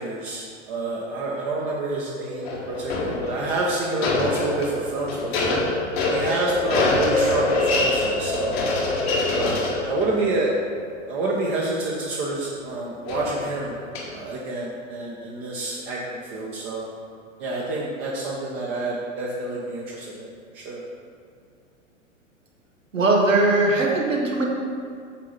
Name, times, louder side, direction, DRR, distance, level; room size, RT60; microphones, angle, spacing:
voice 1, 0.0-5.6 6.1-8.6 9.3-10.6 11.1-13.7 14.1-16.9 17.4-20.3 20.5-20.8, right 2 dB, 30° right, -4 dB, 1.1 m, -28 dB
sound 1, 2.5-12.2 13.1-14.2, left 2 dB, 50° left, 1.4 m, -25 dB
voice 2, 22.9-24.4, right 2 dB, 75° right, -1 dB, 1.6 m, -20 dB
8.4 x 3.8 x 5.6 m, 2.2 s
figure-of-eight pair, 100°, 39 cm